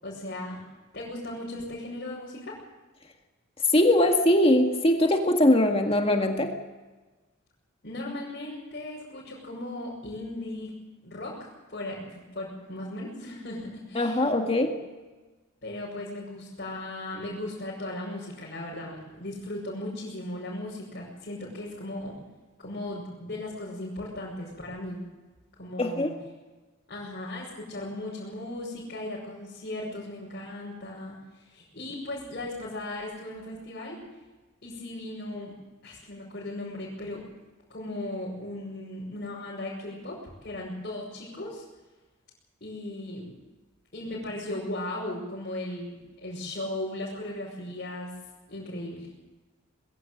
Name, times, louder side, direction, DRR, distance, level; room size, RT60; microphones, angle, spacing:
voice 1, 0.0-0.6 0.9-2.6 7.8-10.7 11.0-14.2 15.6-22.1 22.6-25.0 25.6-26.1 26.9-34.0 34.6-35.5 35.8-37.3 37.7-41.6 42.6-43.3 43.9-48.1 48.5-49.1, left 1 dB, 50° left, -6 dB, 6.0 m, -37 dB
voice 2, 3.7-6.5 14.0-14.8 25.8-26.1, left 1 dB, 30° left, 3 dB, 1.9 m, -21 dB
21.5 x 16.0 x 7.8 m, 1.2 s
head